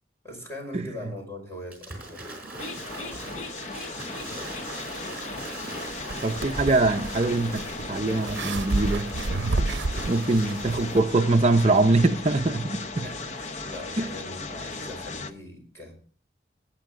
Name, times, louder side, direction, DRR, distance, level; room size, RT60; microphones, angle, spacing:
voice 1, 0.2-2.3 3.0-3.6 13.0-15.9, left 1 dB, 15° left, 5.2 m, -41 dB
Waves surf / Splash splatter, 1.7-11.0, right 2 dB, 10° right, 4.6 m, -41 dB
sound 1, 2.6-15.3, left 3 dB, 40° left, 0.8 m, -37 dB
sound 2, 5.9-11.0, right 3 dB, 85° right, 0.6 m, -31 dB
voice 2, 6.2-9.1 10.1-13.1 14.0-14.1, right 2 dB, 35° right, 0.5 m, -23 dB
18.5 x 9.2 x 3.6 m
head